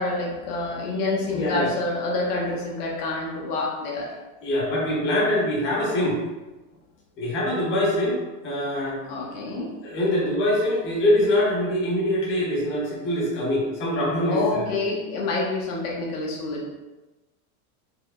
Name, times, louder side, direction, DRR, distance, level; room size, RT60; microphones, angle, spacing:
voice 1, 0.0-4.1 9.0-9.7 14.3-16.7, left 2 dB, 90° left, -3 dB, 1.1 m, -27 dB
voice 2, 1.3-1.7 4.4-6.2 7.2-9.0 9.8-14.7, left 1 dB, 25° left, -5 dB, 1.0 m, -24 dB
4.8 x 2.2 x 2.4 m, 1.1 s
supercardioid pair, 165°, 43 cm